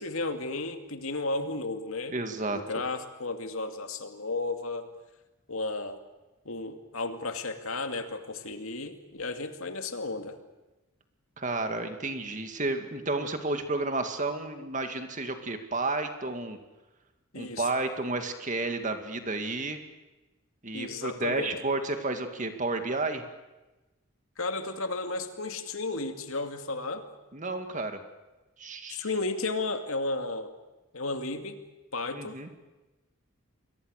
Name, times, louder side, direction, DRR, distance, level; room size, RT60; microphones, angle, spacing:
voice 1, 0.0-2.1 2.5-4.9 5.5-6.0 6.4-10.4 17.3-17.7 20.7-21.6 24.4-27.1 28.9-30.5 30.9-31.6 31.9-32.5, left 3 dB, 80° left, 6 dB, 2.5 m, -33 dB
voice 2, 2.1-2.6 11.4-16.6 17.4-19.8 20.6-23.2 27.3-28.0 28.6-29.1 32.1-32.5, right 2 dB, 35° right, 6 dB, 2.3 m, -31 dB
29.5 x 23.0 x 6.7 m, 1.1 s
head